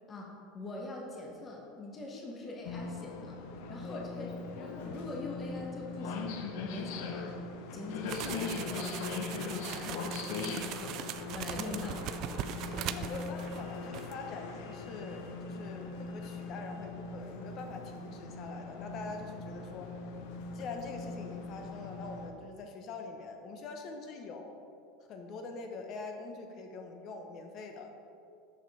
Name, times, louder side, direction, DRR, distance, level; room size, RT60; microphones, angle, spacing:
voice 1, 0.1-3.4 3.7-7.3 7.7-11.0 11.2-12.1, left 2 dB, 25° left, -1 dB, 1.2 m, -43 dB
sound 1, 2.6-22.3, left 4 dB, 70° left, 0.7 m, -40 dB
voice 2, 3.8-4.3 12.6-20.0 20.5-24.5 25.1-27.9, left 3 dB, 45° left, 4 dB, 0.9 m, -44 dB
sound 2, 8.1-13.7 13.9-14.1, right 11 dB, 50° right, 0.3 m, -40 dB
6.6 x 5.9 x 4.2 m, 2.6 s
supercardioid pair, 115°, 0 cm